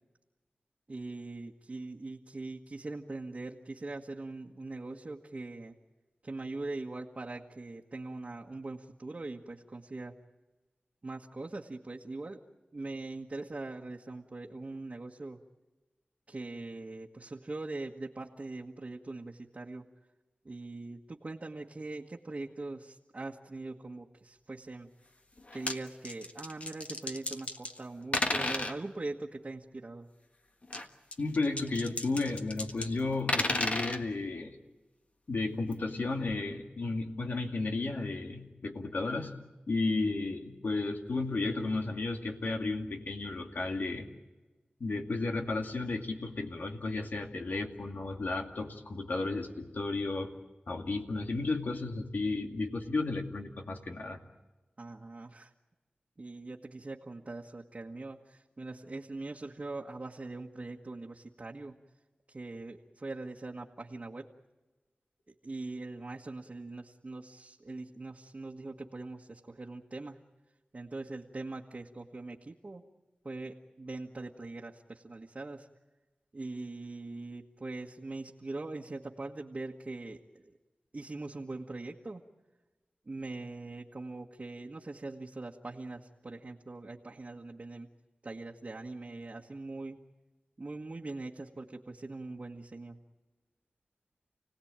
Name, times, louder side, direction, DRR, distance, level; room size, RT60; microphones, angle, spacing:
voice 1, 0.9-5.7 6.2-10.1 11.0-12.4 12.7-15.4 16.3-19.8 20.4-24.9 25.5-30.1 54.8-55.5 56.2-61.7 62.3-64.3 65.3-70.2 70.7-72.8 73.2-75.7 76.3-80.5 80.9-82.2 83.0-87.9 88.2-90.0 90.6-93.0, right 2 dB, 45° right, -1 dB, 1.5 m, -42 dB
sound 1, 25.4-25.8 26.0-27.8 28.1-28.7 30.6-32.9 33.1-34.0 35.7-35.8 36.3-36.4, left 2 dB, 45° left, 1.6 m, -33 dB
voice 2, 31.2-34.6 35.3-39.3 39.7-44.1 44.8-50.3 50.7-54.2, left 3 dB, 75° left, 4 dB, 2.3 m, -33 dB
29.5 x 18.0 x 8.9 m, 1.2 s
wide cardioid pair, 70°, 3 cm